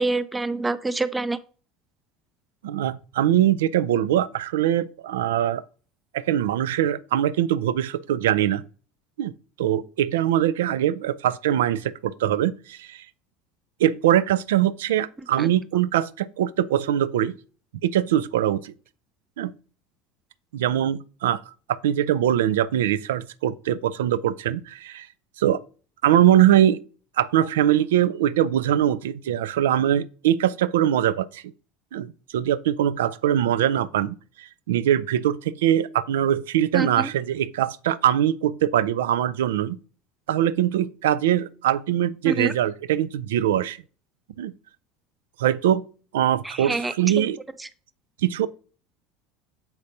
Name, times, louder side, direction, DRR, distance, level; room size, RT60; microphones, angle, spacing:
voice 1, 0.0-1.4 15.4-15.5 36.7-37.1 42.2-42.5 46.4-47.3, right 2 dB, 10° right, 0.5 m, -27 dB
voice 2, 2.6-5.6 6.1-8.6 9.2-9.3 9.6-13.0 13.8-17.3 17.8-18.7 19.4-19.5 20.5-21.4 21.7-25.1 25.4-25.6 26.0-26.8 27.2-31.4 31.9-39.8 40.3-43.8 44.4-44.5 45.4-45.8 46.1-47.4 48.2-48.5, right 11 dB, 65° right, 0.3 m, -22 dB
7.3 x 5.1 x 2.6 m
figure-of-eight pair, 70°, 0 cm